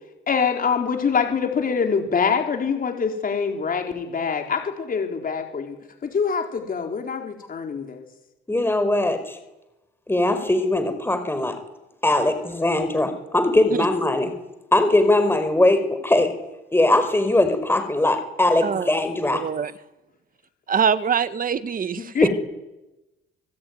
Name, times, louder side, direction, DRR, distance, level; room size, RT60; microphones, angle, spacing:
voice 1, 0.3-5.8 6.0-8.0 22.0-22.3, left 6 dB, 45° left, 4 dB, 4.2 m, -24 dB
voice 2, 8.5-9.4 10.1-11.5 12.0-14.3 14.7-16.3 16.7-19.4 22.2-22.3, left 2 dB, 10° left, 9 dB, 4.7 m, -20 dB
voice 3, 18.6-18.9 19.3-19.7 20.7-22.3, right 7 dB, 45° right, 13 dB, 1.6 m, -24 dB
25.5 x 19.5 x 9.5 m, 1.0 s
cardioid pair, 90°, 20 cm